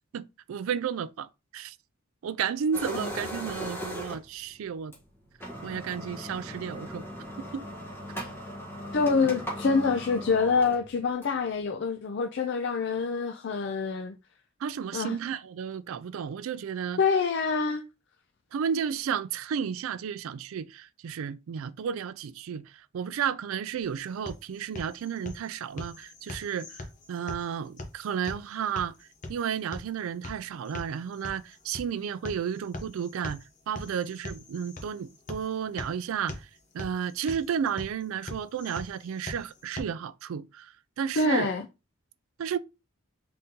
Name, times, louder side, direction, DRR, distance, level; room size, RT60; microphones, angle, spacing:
voice 1, 0.1-1.3 1.5-1.8 2.2-4.9 5.6-7.0 7.5-7.6 14.6-17.0 18.5-28.9 29.3-36.4 36.7-41.5 42.4-42.6, right 7 dB, 75° right, 0.3 m, -32 dB
sound 1, 2.7-4.4 4.9-5.0 5.3-11.5, equal, 10° left, 1.1 m, -38 dB
voice 2, 8.9-14.1 14.9-15.2 17.0-17.8 41.2-41.6, left 4 dB, 55° left, 0.4 m, -26 dB
sound 2, 23.8-39.8, left 2 dB, 35° left, 0.8 m, -43 dB
3.9 x 3.6 x 2.8 m
head